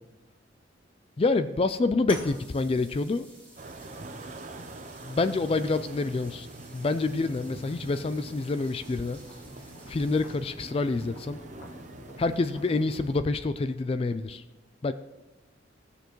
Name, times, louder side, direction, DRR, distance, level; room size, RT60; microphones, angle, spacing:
voice 1, 1.2-3.3 5.0-6.5 6.7-9.2 9.9-11.4 12.2-14.4 14.8-14.9, left 3 dB, 30° left, 12 dB, 0.3 m, -27 dB
sound 1, 2.1-10.7, equal, 10° left, 2.6 m, -51 dB
sound 2, 3.6-13.2, right 2 dB, 40° right, 0.7 m, -44 dB
sound 3, 6.8-13.0, right 1 dB, 75° left, 1.7 m, -52 dB
17.5 x 6.8 x 3.1 m, 1.1 s
head